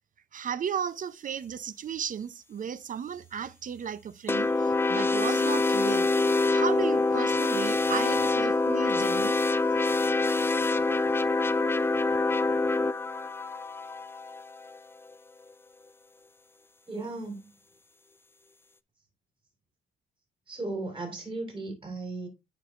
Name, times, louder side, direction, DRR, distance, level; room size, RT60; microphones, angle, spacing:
voice 1, 0.3-6.1 6.5-9.4, right 8 dB, 40° right, 0.5 m, -34 dB
sound 1, 4.3-14.8, left 3 dB, 10° left, 0.4 m, -26 dB
voice 2, 16.9-17.4 20.5-22.3, right 2 dB, 25° right, 4.0 m, -36 dB
9.8 x 5.1 x 2.5 m
cardioid pair, 90°, 20 cm